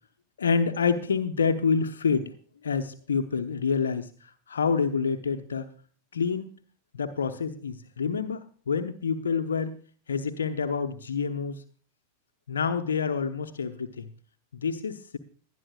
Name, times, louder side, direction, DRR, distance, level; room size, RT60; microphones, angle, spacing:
voice 1, 0.4-2.3 2.6-4.1 4.5-5.7 6.1-6.5 6.9-9.7 10.1-11.6 12.5-14.1 14.6-15.2, left 5 dB, 70° left, 6 dB, 0.9 m, -27 dB
20.0 x 11.5 x 2.4 m, 0.43 s
figure-of-eight pair, 90°, 0 cm